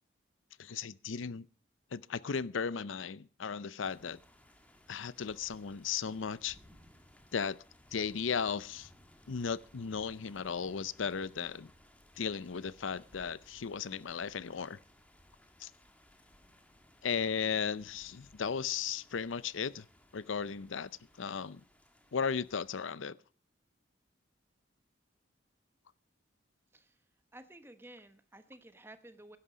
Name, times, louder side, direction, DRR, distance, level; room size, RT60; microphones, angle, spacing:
voice 1, 0.6-1.5 1.9-4.2 4.9-6.6 7.3-7.6 7.9-8.9 9.3-11.7 12.2-14.8 15.6-15.7 17.0-19.9 20.1-20.9 21.2-21.6 22.1-23.2, left 6 dB, 80° left, 0.6 m, -36 dB
sound 1, 3.8-22.9, left 1 dB, 5° left, 1.7 m, -62 dB
voice 2, 27.3-29.4, right 1 dB, 10° right, 1.0 m, -53 dB
16.5 x 11.5 x 5.0 m
head